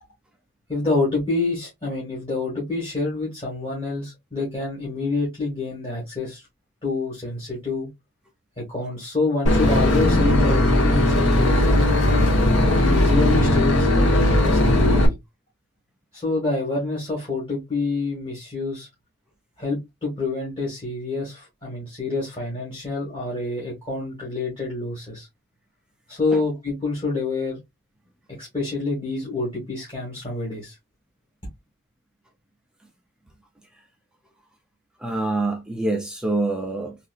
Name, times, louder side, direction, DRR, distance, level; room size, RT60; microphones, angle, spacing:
voice 1, 0.7-6.5 6.8-7.9 8.6-12.3 12.7-15.1 16.1-18.9 19.6-25.3 26.1-27.6 28.4-30.8, left 3 dB, 25° left, 1.4 m, -27 dB
Boat Water vehicle / Engine, 9.5-15.1, left 1 dB, 55° left, 1.0 m, -18 dB
voice 2, 35.0-37.1, right 2 dB, 5° right, 0.4 m, -26 dB
3.8 x 2.5 x 2.4 m
head